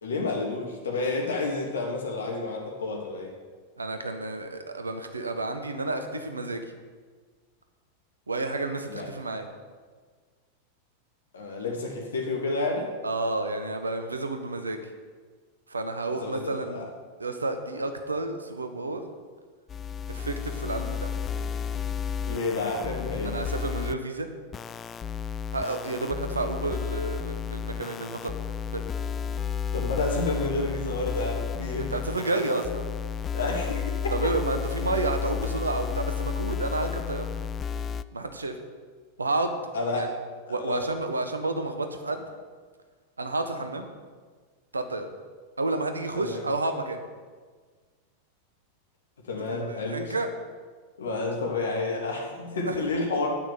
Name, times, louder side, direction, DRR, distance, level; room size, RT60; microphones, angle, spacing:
voice 1, 0.0-3.3 8.9-9.1 11.3-12.9 16.2-16.9 22.2-23.4 29.7-31.9 33.3-34.3 35.4-35.5 39.7-40.1 40.5-40.9 46.2-46.4 49.3-50.1 51.0-53.3, left 3 dB, 65° left, 1 dB, 2.8 m, -30 dB
voice 2, 3.8-6.7 8.3-9.5 13.0-14.8 15.7-16.9 17.2-19.0 20.1-21.2 23.2-24.3 25.5-28.4 28.7-28.8 31.8-32.8 34.1-37.3 38.1-38.6 39.2-39.5 39.9-40.1 40.5-42.2 43.2-43.9 44.7-45.1 45.6-47.0 49.6-50.3 52.7-52.8, right 2 dB, 75° right, 7 dB, 1.5 m, -30 dB
sound 1, 19.7-23.9 24.5-38.0, left 7 dB, 25° left, 0.4 m, -32 dB
9.4 x 9.1 x 9.6 m, 1.5 s
figure-of-eight pair, 90°, 0 cm